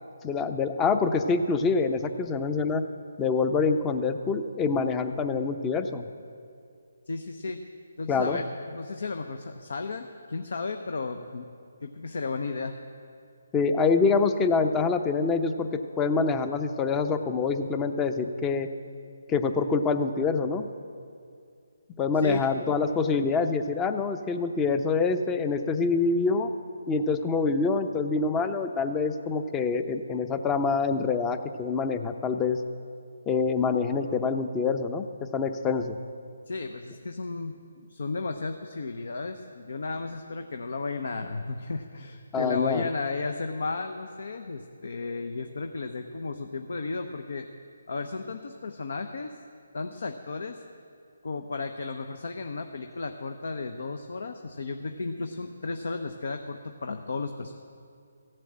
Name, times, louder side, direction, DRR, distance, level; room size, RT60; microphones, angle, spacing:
voice 1, 0.2-2.8 3.2-6.1 8.1-8.4 13.5-18.7 19.3-20.7 22.0-26.5 26.9-32.6 33.3-35.0 35.3-36.0 42.3-42.8, left 4 dB, 15° left, 9 dB, 0.6 m, -26 dB
voice 2, 7.1-7.6 8.0-11.5 11.8-12.8 22.1-22.5 36.5-47.5 47.9-49.3 49.7-50.6 51.2-57.5, left 3 dB, 65° left, 6 dB, 0.8 m, -34 dB
15.0 x 7.7 x 8.7 m, 2.3 s
figure-of-eight pair, 150°, 0 cm